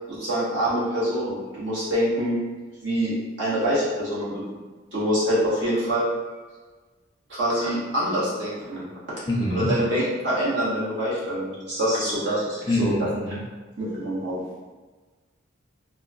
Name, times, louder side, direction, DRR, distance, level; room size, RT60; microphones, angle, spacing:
voice 1, 0.1-2.4 2.8-4.4 4.9-6.1 7.3-8.9 9.5-13.1 13.8-14.4, equal, 60° right, -9 dB, 1.2 m, -25 dB
voice 2, 9.3-9.7 12.7-13.4, left 1 dB, 20° left, -2 dB, 0.4 m, -25 dB
3.1 x 2.1 x 2.4 m, 1.3 s
head